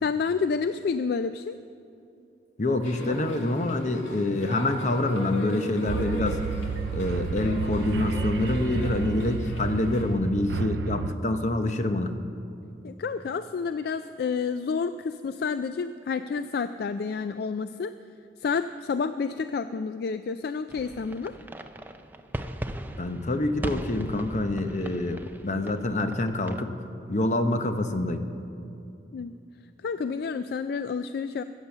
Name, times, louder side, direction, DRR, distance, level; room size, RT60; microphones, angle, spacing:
voice 1, 0.0-1.6 8.7-8.9 12.8-17.9 18.4-21.3 29.1-29.3 29.8-31.4, left 5 dB, 55° left, 11 dB, 0.3 m, -29 dB
voice 2, 2.6-6.4 6.9-12.2 23.0-26.8 27.1-28.2, left 2 dB, 40° left, 7 dB, 0.8 m, -26 dB
sound 1, 2.8-10.0, left 1 dB, 85° left, 2.2 m, -37 dB
sound 2, 5.9-11.2, right 6 dB, 70° right, 0.4 m, -31 dB
sound 3, 20.7-26.6, right 1 dB, 10° right, 0.4 m, -38 dB
15.0 x 8.2 x 7.1 m, 2.7 s
head